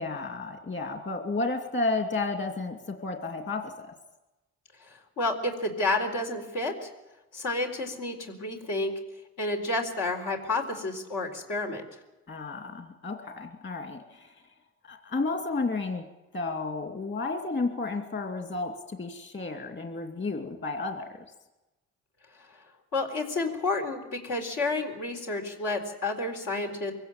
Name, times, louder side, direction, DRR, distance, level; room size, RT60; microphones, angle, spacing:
voice 1, 0.0-3.9 12.3-14.3 14.8-16.0 16.3-21.1, left 3 dB, 40° left, 4 dB, 2.6 m, -32 dB
voice 2, 5.2-6.9 7.3-8.9 9.4-11.8 22.9-26.9, left 2 dB, 85° left, 1 dB, 4.1 m, -30 dB
23.5 x 16.5 x 9.1 m, 1.0 s
cardioid pair, 90°, 30 cm